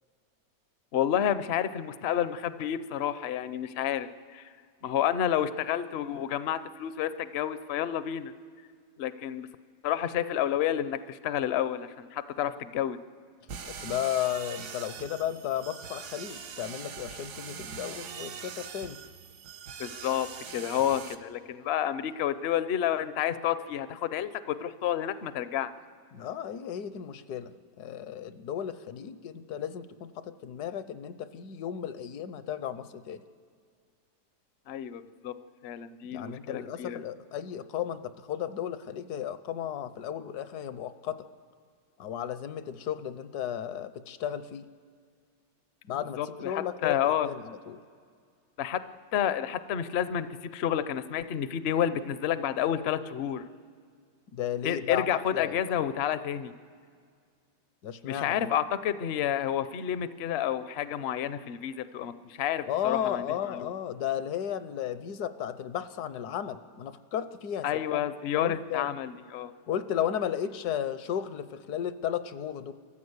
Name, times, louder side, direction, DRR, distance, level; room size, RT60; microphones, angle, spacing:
voice 1, 0.9-4.4 4.8-8.3 9.0-9.5 9.8-13.0 19.8-20.3 20.5-25.7 34.7-35.3 35.6-37.0 46.2-47.3 48.6-48.8 49.1-53.4 54.6-56.5 58.1-63.7 67.6-69.5, left 10 dB, 60° left, 13 dB, 0.7 m, -30 dB
sound 1, 13.5-21.1, right 7 dB, 70° right, 1.6 m, -42 dB
voice 2, 13.7-19.0 26.1-27.5 27.8-33.2 36.1-41.3 42.0-44.7 45.8-47.8 54.3-55.6 57.8-58.5 62.7-68.0 68.3-68.9 69.7-72.7, left 10 dB, 75° left, 13 dB, 1.3 m, -34 dB
28.5 x 14.0 x 8.1 m, 2.1 s
omnidirectional pair, 1.8 m